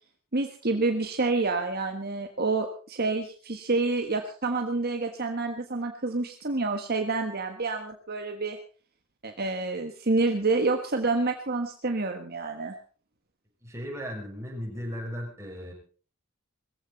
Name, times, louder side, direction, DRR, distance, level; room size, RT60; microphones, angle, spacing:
voice 1, 0.3-8.6 9.2-12.8, right 3 dB, 45° right, 5 dB, 1.5 m, -28 dB
voice 2, 13.6-15.7, equal, 15° right, 0 dB, 6.2 m, -36 dB
20.5 x 15.0 x 4.1 m, 0.40 s
head